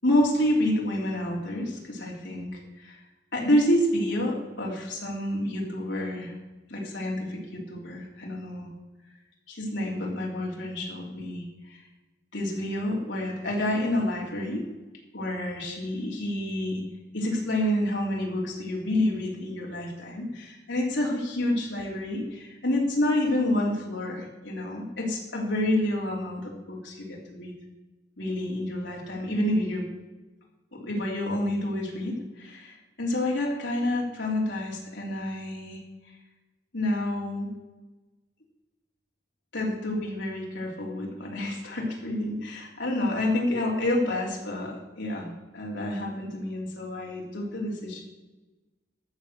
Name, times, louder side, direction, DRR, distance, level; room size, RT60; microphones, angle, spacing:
voice 1, 0.0-3.0 3.3-6.3 6.7-8.7 9.5-11.8 12.3-14.6 15.1-16.8 17.1-27.5 28.2-29.9 30.7-35.8 36.7-37.5 39.5-48.0, left 1 dB, 70° left, -1 dB, 3.3 m, -29 dB
14.0 x 6.4 x 6.5 m, 1.1 s
head